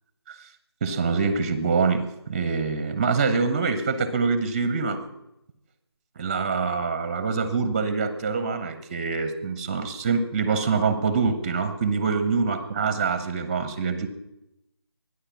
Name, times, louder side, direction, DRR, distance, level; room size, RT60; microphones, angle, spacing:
voice 1, 0.8-5.0 6.2-14.1, right 5 dB, 20° right, 12 dB, 1.1 m, -25 dB
23.5 x 10.0 x 5.7 m, 0.85 s
figure-of-eight pair, 160°, 14 cm